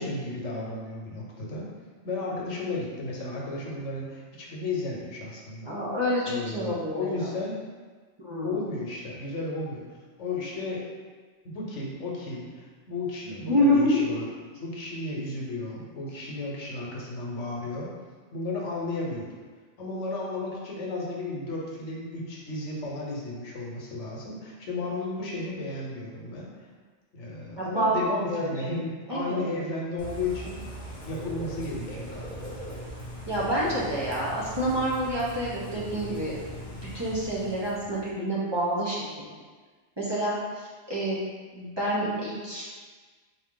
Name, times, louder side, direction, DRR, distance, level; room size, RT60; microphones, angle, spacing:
voice 1, 0.0-1.7 2.0-5.8 6.3-7.6 8.4-9.8 10.2-10.8 11.4-14.3 14.6-17.9 18.3-19.3 19.8-26.7 27.1-28.8 29.1-30.6 31.0-32.6, left 2 dB, 85° left, -3 dB, 1.2 m, -34 dB
voice 2, 5.7-7.3 8.2-8.6 13.5-14.1 27.6-29.5 33.3-36.4 36.7-39.3 40.0-41.2 41.5-42.6, equal, 25° right, -9 dB, 0.7 m, -28 dB
Bird / Rain, 30.0-38.1, equal, 35° left, 1.1 m, -40 dB
4.1 x 2.8 x 3.7 m, 1.4 s
omnidirectional pair, 1.2 m